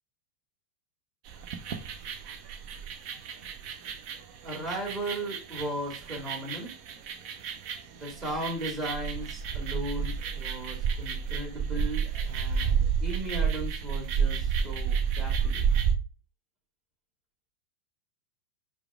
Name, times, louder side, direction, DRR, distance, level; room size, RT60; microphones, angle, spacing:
sound 1, 1.3-16.0, right 7 dB, 50° right, 0.6 m, -30 dB
voice 1, 4.4-6.7 7.9-15.6, right 1 dB, 25° right, -2 dB, 1.9 m, -36 dB
4.8 x 2.3 x 3.4 m, 0.34 s
figure-of-eight pair, 90°, 0 cm